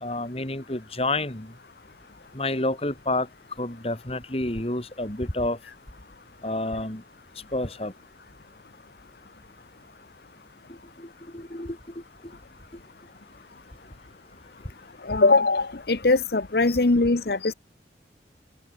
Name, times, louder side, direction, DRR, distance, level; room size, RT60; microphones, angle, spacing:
voice 1, 0.0-1.5 2.3-3.3 3.6-5.6 6.4-7.0 7.5-7.9 10.7-11.8 16.7-16.8 17.4-17.5, left 2 dB, 35° left, 2.6 m, -29 dB
voice 2, 15.0-17.5, left 3 dB, 60° left, 0.9 m, -21 dB
open air
head